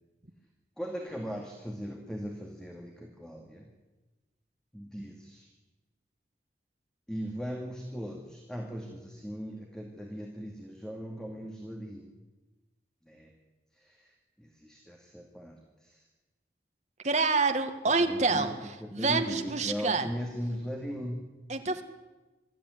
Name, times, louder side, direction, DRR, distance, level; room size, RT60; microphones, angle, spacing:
voice 1, 0.8-3.7 4.7-5.5 7.1-12.1 13.0-13.3 13.7-14.1 14.4-16.0 18.0-18.5 18.8-21.2, equal, 5° left, 0 dB, 2.3 m, -39 dB
voice 2, 17.0-18.5 18.9-20.1 21.5-21.8, right 3 dB, 40° right, 6 dB, 1.8 m, -27 dB
23.5 x 14.0 x 9.7 m, 1.2 s
head